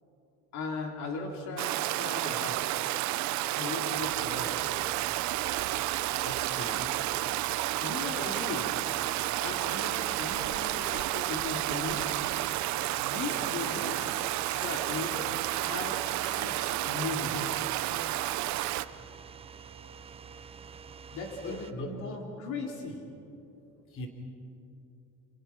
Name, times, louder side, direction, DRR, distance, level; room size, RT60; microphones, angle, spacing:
voice 1, 0.5-2.7 3.6-4.6 7.8-8.7 9.4-12.1 13.0-14.0 14.5-17.6 21.1-23.1, left 3 dB, 60° left, 2 dB, 3.0 m, -38 dB
Stream, 1.6-18.8, right 16 dB, 65° right, 0.7 m, -31 dB
sound 1, 3.9-21.7, right 6 dB, 20° right, 0.5 m, -48 dB
voice 2, 6.2-7.0 21.4-22.2 23.9-24.1, left 2 dB, 45° left, 3 dB, 3.3 m, -40 dB
sound 2, 6.5-13.0 13.3-13.4 13.7-14.1 14.4-15.1 15.4-15.5 15.7-15.8 16.1-16.2 16.4-16.5 16.7-16.8 17.0-17.1 17.4-17.5 17.8-17.9 18.7-18.8, right 1 dB, 10° left, 7.6 m, -53 dB
29.0 x 28.0 x 5.9 m, 2.8 s
cardioid pair, 160°, 31 cm